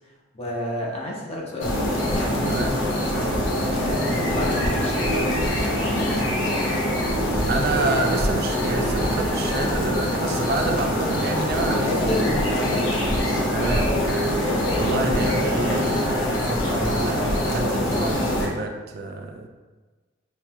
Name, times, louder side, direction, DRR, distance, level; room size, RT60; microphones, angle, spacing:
voice 1, 0.3-1.9 3.8-5.3 5.8-6.5 11.7-13.1 13.6-14.1, left 1 dB, 35° left, -3 dB, 0.7 m, -30 dB
sound 1, 1.6-18.5, equal, 85° left, 0.8 m, -23 dB
voice 2, 2.5-2.8 7.5-12.0 13.5-13.9 14.7-19.5, right 3 dB, 55° right, 3 dB, 0.4 m, -28 dB
5.7 x 2.9 x 2.2 m, 1.3 s
head